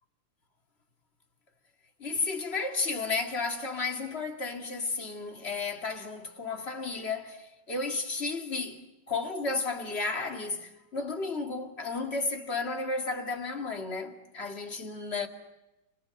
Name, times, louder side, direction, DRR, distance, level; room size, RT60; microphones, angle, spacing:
voice 1, 2.0-8.8 9.1-15.3, left 3 dB, 30° left, 2.4 m, -33 dB
29.5 x 26.5 x 7.6 m
omnidirectional pair, 2.1 m